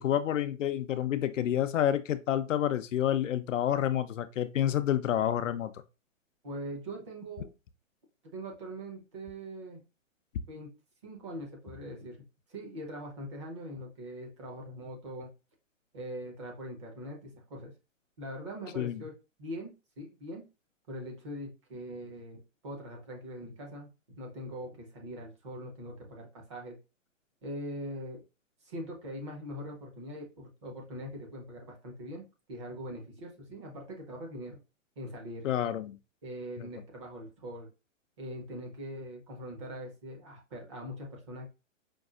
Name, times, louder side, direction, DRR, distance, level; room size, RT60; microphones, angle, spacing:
voice 1, 0.0-5.7 18.8-19.0 35.4-36.0 36.6-36.7, left 11 dB, 65° left, 0.5 m, -29 dB
voice 2, 6.4-7.5 8.2-9.8 10.5-10.7 11.0-12.2 12.5-15.3 15.9-17.7 18.2-19.1 19.4-19.7 20.0-20.4 20.9-23.9 24.2-26.7 27.4-28.2 28.6-32.2 32.5-34.6 35.0-35.5 36.2-37.7 38.2-41.5, equal, 20° right, 0.7 m, -42 dB
5.2 x 2.3 x 2.4 m
hypercardioid pair, 160°, 40 cm